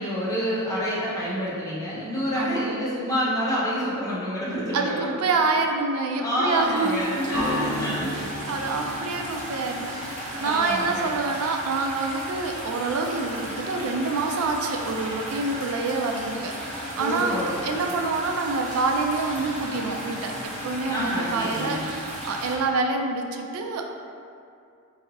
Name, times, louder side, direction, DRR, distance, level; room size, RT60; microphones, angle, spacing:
voice 1, 0.0-5.1 6.2-8.2 10.3-11.1 16.8-17.6 20.9-21.9, equal, 15° left, -9 dB, 0.9 m, -27 dB
voice 2, 4.7-7.2 8.5-23.9, right 3 dB, 90° right, 3 dB, 0.4 m, -27 dB
sound 1, 6.5-22.6, equal, 35° right, 0.6 m, -35 dB
sound 2, 7.3-11.3, left 1 dB, 70° right, 1.4 m, -35 dB
4.6 x 2.7 x 2.9 m, 2.4 s
head